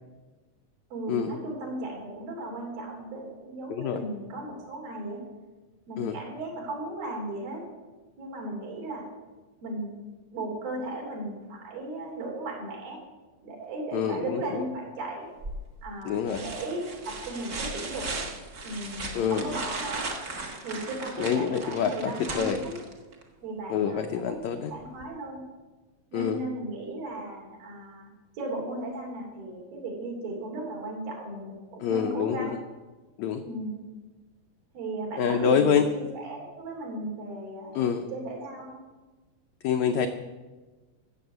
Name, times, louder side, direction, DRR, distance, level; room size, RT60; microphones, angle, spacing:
voice 1, 0.9-5.2 5.9-7.6 8.2-9.1 9.6-9.9 10.3-13.0 13.4-15.3 15.8-18.1 18.6-20.1 20.6-22.7 23.4-25.4 26.1-28.1 28.4-32.6 33.4-33.7 34.7-38.8, right 2 dB, 80° right, -1 dB, 5.1 m, -36 dB
voice 2, 3.7-4.0 6.0-6.2 13.9-14.6 16.0-16.4 19.1-19.4 21.2-22.6 23.7-24.7 26.1-26.4 31.8-32.5 33.2-33.4 35.2-35.9 37.7-38.0 39.6-40.1, left 7 dB, 90° left, 7 dB, 1.6 m, -26 dB
sound 1, 15.4-15.8 16.3-23.2 25.0-25.1, right 3 dB, 45° right, 1.1 m, -37 dB
14.0 x 7.4 x 7.9 m, 1.2 s
omnidirectional pair, 4.1 m